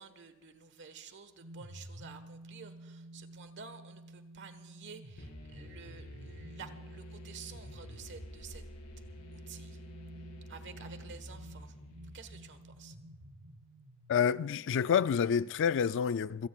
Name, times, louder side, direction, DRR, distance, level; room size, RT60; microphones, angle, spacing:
voice 1, 0.0-8.6 9.3-9.8 10.5-11.7 12.1-12.9, right 6 dB, 55° right, 1.4 m, -51 dB
sound 1, 1.4-14.2, right 1 dB, 85° right, 3.2 m, -52 dB
sound 2, 5.2-12.9, equal, 75° left, 5.2 m, -49 dB
voice 2, 14.1-16.5, left 7 dB, 55° left, 0.4 m, -28 dB
27.0 x 17.5 x 2.4 m
head